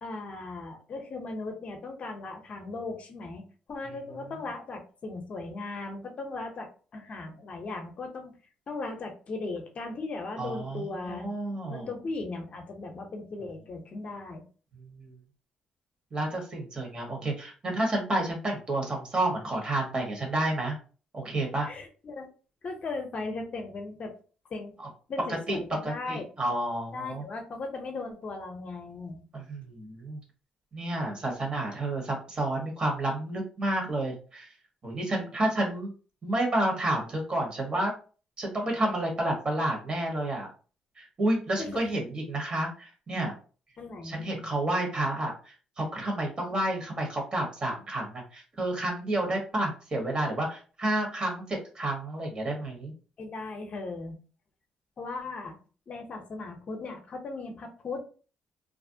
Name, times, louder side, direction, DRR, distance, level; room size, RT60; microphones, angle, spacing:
voice 1, 0.0-3.4 3.7-8.3 8.7-11.3 11.7-14.4 21.7-22.3 22.6-24.1 24.5-24.7 25.1-26.2 26.9-29.2 41.6-41.9 43.8-44.2 53.2-54.1 55.0-55.6 55.9-58.0, left 3 dB, 50° left, 3 dB, 0.6 m, -37 dB
voice 2, 10.4-11.9 14.7-15.2 16.1-20.8 21.1-21.7 25.5-27.2 29.3-30.2 30.7-34.5 34.8-35.9 36.2-37.9 38.4-40.5 41.0-43.3 44.0-52.9, right 1 dB, 35° right, 0 dB, 1.1 m, -30 dB
2.4 x 2.0 x 2.6 m, 0.38 s
cardioid pair, 80°, 3 cm